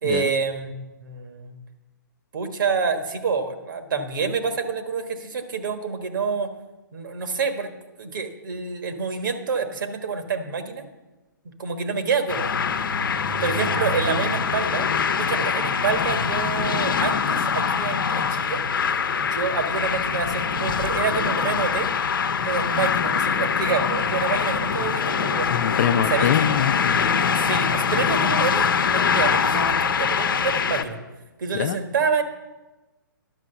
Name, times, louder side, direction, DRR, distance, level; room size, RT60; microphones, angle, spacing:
voice 1, 0.0-1.6 2.3-6.5 6.9-7.7 8.0-10.8 11.6-12.5 13.4-14.8 15.2-18.6 19.2-21.9 22.5-25.5 26.0-26.5 27.3-31.0 31.4-32.2, right 5 dB, 70° right, 6 dB, 1.5 m, -27 dB
sound 1, 12.3-30.8, left 6 dB, 75° left, 0.9 m, -23 dB
voice 2, 25.5-27.1 31.5-31.8, left 9 dB, 50° left, 11 dB, 0.6 m, -24 dB
11.0 x 6.1 x 6.9 m, 1.1 s
hypercardioid pair, 135°, 11 cm